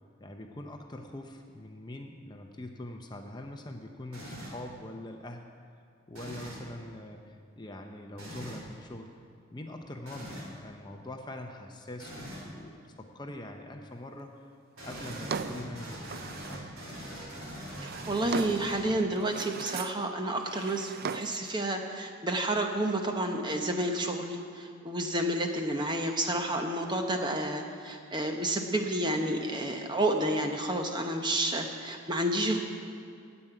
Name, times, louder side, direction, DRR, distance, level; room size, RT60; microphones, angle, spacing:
voice 1, 0.2-5.5 6.1-9.1 9.5-14.3 14.8-16.7, left 1 dB, 20° left, 3 dB, 0.6 m, -43 dB
sound 1, 4.1-4.7 6.1-6.7 8.2-8.6 10.1-10.6 12.0-12.5 14.8-19.1, equal, 85° right, 3.3 m, -42 dB
Drawer open or close, 14.9-16.7 17.5-18.8 19.2-20.1 20.4-21.5, right 5 dB, 45° right, 0.3 m, -38 dB
voice 2, 17.8-32.6, right 1 dB, 20° right, 4 dB, 0.8 m, -30 dB
9.6 x 8.9 x 7.9 m, 2.3 s
head